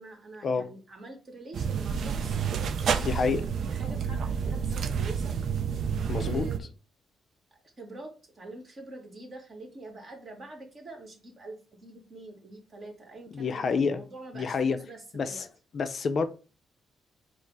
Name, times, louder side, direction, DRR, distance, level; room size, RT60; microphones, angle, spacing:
voice 1, 0.0-2.4 2.8-5.3 6.1-6.7 7.5-15.5, right 2 dB, 45° right, 1.5 m, -46 dB
sound 1, 1.5-6.6, right 6 dB, 65° right, 0.4 m, -29 dB
voice 2, 3.0-3.5 6.1-6.5 13.3-14.0 14.3-14.8 15.1-15.5 15.7-16.3, left 5 dB, 50° left, 0.5 m, -28 dB
4.6 x 2.0 x 4.6 m
cardioid pair, 90°, 0 cm